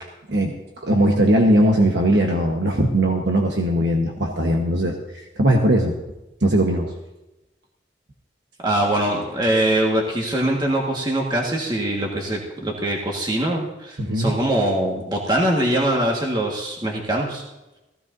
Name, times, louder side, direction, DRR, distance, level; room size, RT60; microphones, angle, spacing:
voice 1, 0.0-5.0 5.4-5.9 6.4-6.9 14.0-14.3, right 1 dB, 75° right, 1 dB, 1.3 m, -19 dB
voice 2, 8.6-17.4, right 1 dB, 25° right, -1 dB, 1.6 m, -22 dB
16.5 x 15.5 x 2.7 m, 1.0 s
head